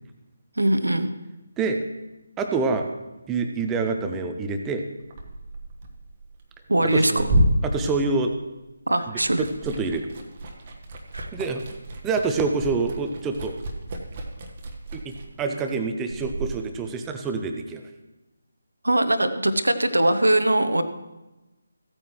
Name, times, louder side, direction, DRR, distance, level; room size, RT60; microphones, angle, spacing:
voice 1, 0.6-1.1 6.7-7.3 8.9-9.4 11.1-11.3 18.8-20.8, right 1 dB, 70° right, 10 dB, 0.9 m, -21 dB
voice 2, 2.4-2.9 3.3-4.8 6.8-7.1 7.6-8.4 9.1-10.1 11.3-11.6 12.0-13.6 14.9-17.8, right 4 dB, 10° right, 5 dB, 0.7 m, -26 dB
Liquid, 5.0-8.7 9.0-16.6, right 1 dB, 30° right, 1.1 m, -30 dB
15.0 x 8.8 x 3.1 m, 1.0 s
figure-of-eight pair, 150°, 0 cm